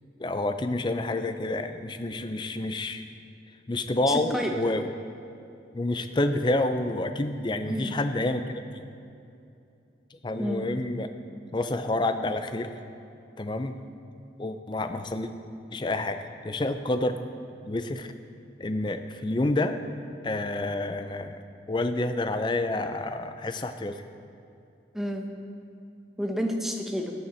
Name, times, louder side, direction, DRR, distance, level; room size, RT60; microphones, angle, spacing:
voice 1, 0.2-3.1 3.7-4.9 5.7-8.8 10.1-11.1 11.5-12.7 13.4-13.8 14.4-15.3 15.7-17.2 17.6-18.1 18.6-19.8 20.2-21.4 21.7-24.0, left 2 dB, 25° left, 8 dB, 0.5 m, -28 dB
voice 2, 4.1-4.5 7.7-8.0 10.4-10.7 24.9-25.3 26.2-27.1, equal, ahead, 2 dB, 0.8 m, -30 dB
15.0 x 8.5 x 4.3 m, 2.6 s
head